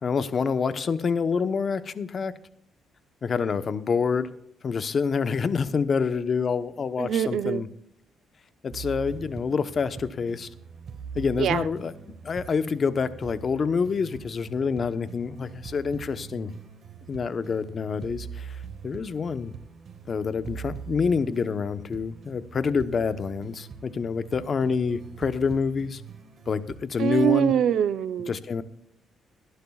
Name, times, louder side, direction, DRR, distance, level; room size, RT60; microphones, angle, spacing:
voice 1, 0.0-2.3 3.2-4.3 4.6-7.7 8.6-10.5 11.1-11.9 12.2-16.5 17.1-18.6 18.8-19.5 20.1-26.0 26.5-27.5 28.3-28.6, left 5 dB, 45° left, 12 dB, 1.0 m, -27 dB
voice 2, 7.0-7.7 11.4-11.6 27.0-28.3, right 10 dB, 70° right, 14 dB, 0.7 m, -24 dB
sound 1, 8.7-26.8, right 7 dB, 55° right, 1.7 m, -43 dB
22.0 x 11.5 x 2.4 m, 0.73 s
cardioid pair, 90°, 0 cm